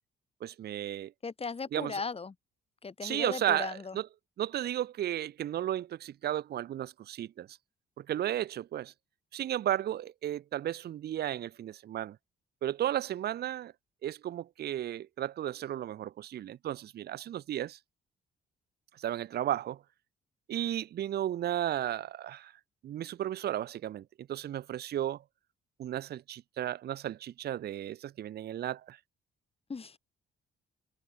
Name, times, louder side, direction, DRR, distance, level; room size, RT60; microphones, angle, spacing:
voice 1, 0.4-1.1 1.7-2.0 3.0-4.1 4.4-7.5 8.0-8.9 9.3-12.2 12.6-13.7 14.0-17.8 19.0-19.8 20.5-22.5 22.8-25.2 25.8-29.0, right 12 dB, 55° right, 0.6 m, -34 dB
voice 2, 1.2-2.3 2.8-3.9 29.7-30.0, left 4 dB, 30° left, 1.9 m, -37 dB
cardioid pair, 90°, 20 cm